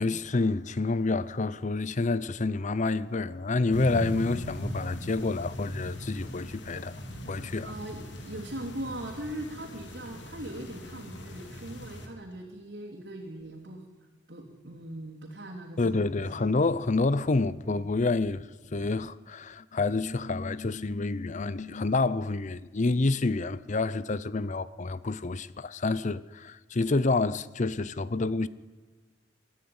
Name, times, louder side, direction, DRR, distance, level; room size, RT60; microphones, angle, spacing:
voice 1, 0.0-6.9 7.3-7.7 15.8-28.5, left 3 dB, 40° left, 0.6 m, -28 dB
sound 1, 3.7-12.1, equal, 65° left, 3.3 m, -39 dB
voice 2, 7.6-13.8 14.3-16.3, right 1 dB, 65° right, 3.2 m, -40 dB
24.0 x 14.0 x 9.6 m
head